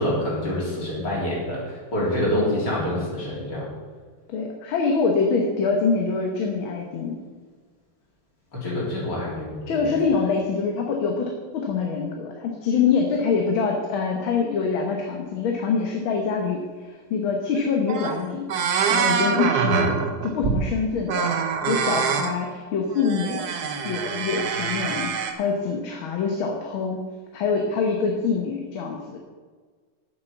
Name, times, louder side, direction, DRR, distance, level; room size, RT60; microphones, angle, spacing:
voice 1, 0.0-1.6 1.9-3.7 8.5-9.9, left 1 dB, 55° left, -5 dB, 4.3 m, -26 dB
voice 2, 4.3-7.2 9.7-18.5 18.9-21.3 21.7-23.5 23.8-27.0 27.3-29.2, left 5 dB, 70° left, 1 dB, 1.9 m, -25 dB
sound 1, 17.5-17.6 17.9-18.2 18.5-20.7 21.1-22.3 22.9-25.3, right 6 dB, 55° right, 1.2 m, -25 dB
8.9 x 7.5 x 7.2 m, 1.5 s
omnidirectional pair, 2.3 m